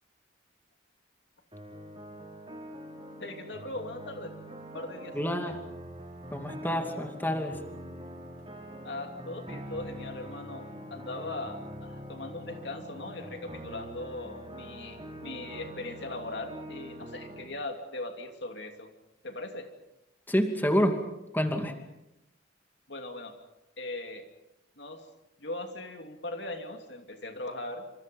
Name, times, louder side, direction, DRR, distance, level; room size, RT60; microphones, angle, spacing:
sound 1, 1.5-17.5, equal, 25° right, 6.0 m, -44 dB
voice 1, 3.2-4.3 4.7-5.4 8.8-18.9 19.2-19.7 22.9-23.3 23.8-24.2 24.8-25.0 25.4-27.9, left 2 dB, 60° left, 5 dB, 2.8 m, -39 dB
voice 2, 5.1-5.6 6.3-7.6 20.3-21.0 21.3-21.7, equal, 10° left, 5 dB, 2.5 m, -28 dB
28.5 x 27.0 x 5.5 m, 0.88 s
head